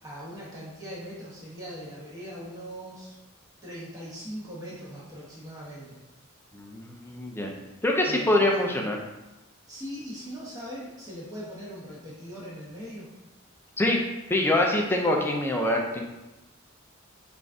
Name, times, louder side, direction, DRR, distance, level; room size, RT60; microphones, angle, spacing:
voice 1, 0.0-3.2 3.6-6.0 8.0-8.6 9.7-13.1, equal, 15° right, -7 dB, 1.0 m, -40 dB
voice 2, 6.5-7.5 7.8-9.0 13.8-14.0 14.3-16.0, left 1 dB, 10° left, 0 dB, 0.4 m, -24 dB
3.8 x 2.5 x 3.4 m, 1.0 s
head